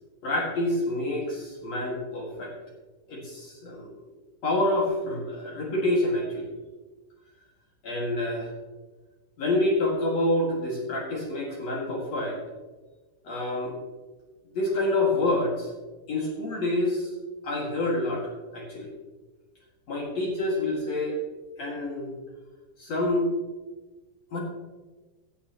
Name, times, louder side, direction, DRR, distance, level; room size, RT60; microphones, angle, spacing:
voice 1, 0.2-2.5 3.1-3.9 4.4-6.5 7.8-8.5 9.4-12.4 13.2-13.7 14.5-15.7 16.1-17.1 17.4-18.9 19.9-21.2 21.6-22.1 22.8-23.3 24.3-24.4, left 1 dB, 50° left, -2 dB, 2.0 m, -27 dB
15.5 x 11.5 x 2.9 m, 1.2 s
omnidirectional pair, 5.8 m